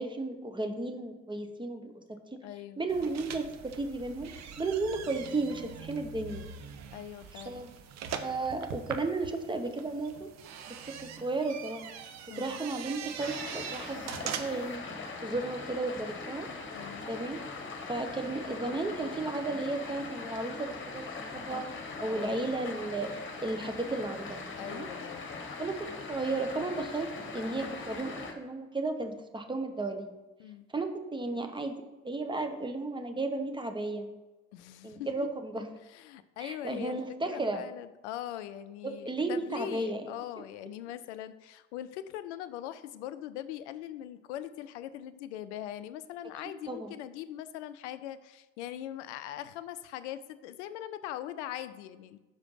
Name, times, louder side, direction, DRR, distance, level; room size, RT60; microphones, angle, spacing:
voice 1, 0.0-2.0 2.3-2.4 2.8-6.5 7.5-7.7 8.2-10.3 10.7-11.9 12.4-14.9 15.2-16.5 17.1-17.4 17.9-21.7 22.0-24.9 25.6-30.1 30.7-34.1 34.8-35.7 36.4-37.6 38.8-40.1 46.7-46.9, right 2 dB, 15° right, 6 dB, 1.0 m, -34 dB
voice 2, 2.4-2.8 6.9-7.6 12.3-12.6 16.7-17.1 22.0-22.5 24.6-25.3 30.4-30.7 34.5-35.3 35.9-37.0 37.2-52.2, left 12 dB, 70° left, 13 dB, 0.6 m, -41 dB
sound 1, 2.9-14.8, right 7 dB, 50° right, 0.8 m, -42 dB
sound 2, 13.2-28.3, left 4 dB, 35° left, 1.3 m, -41 dB
6.2 x 4.9 x 5.5 m, 1.1 s
figure-of-eight pair, 55°, 36 cm